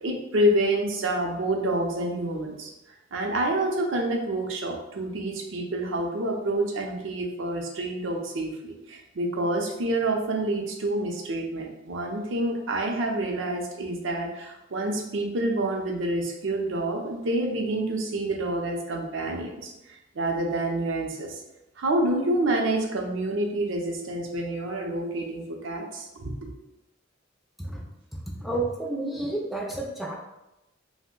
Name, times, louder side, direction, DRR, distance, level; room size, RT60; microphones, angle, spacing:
voice 1, 0.0-2.7 3.1-19.7 20.2-21.3 21.8-26.3, right 1 dB, 75° right, 1 dB, 0.5 m, -28 dB
voice 2, 28.4-30.1, right 2 dB, ahead, -2 dB, 0.3 m, -30 dB
2.5 x 2.1 x 3.6 m, 0.92 s
head